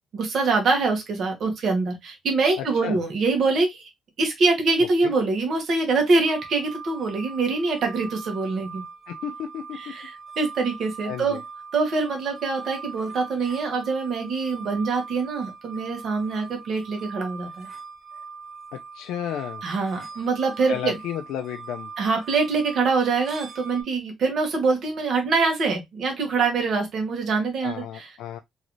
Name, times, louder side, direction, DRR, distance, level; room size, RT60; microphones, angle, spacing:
voice 1, 0.1-3.9 4.2-8.8 9.8-10.1 10.4-11.4 11.7-17.7 19.6-21.0 22.0-28.1, right 4 dB, 60° right, 1.2 m, -24 dB
voice 2, 2.6-3.0 4.8-5.1 9.1-9.9 11.0-11.4 18.7-19.6 20.6-21.9 27.6-28.4, left 9 dB, 90° left, 0.3 m, -33 dB
sound 1, 6.2-23.8, right 5 dB, 25° right, 1.6 m, -41 dB
3.1 x 2.6 x 2.9 m
cardioid pair, 90°, 0 cm